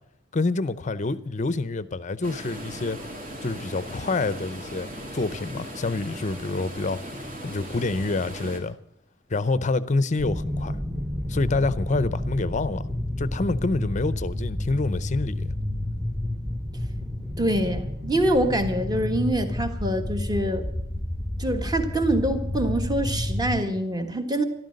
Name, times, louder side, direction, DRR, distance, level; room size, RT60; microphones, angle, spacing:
voice 1, 0.3-3.0 3.4-7.0 7.4-8.8 9.3-10.8 11.3-12.9 13.2-15.5, left 3 dB, 40° left, 0.6 m, -27 dB
sound 1, 2.2-8.6, equal, 50° right, 3.1 m, -38 dB
sound 2, 10.2-23.6, left 1 dB, ahead, 1.0 m, -30 dB
voice 2, 17.4-20.7 21.4-24.4, right 1 dB, 20° right, 1.5 m, -25 dB
13.5 x 12.5 x 6.5 m
head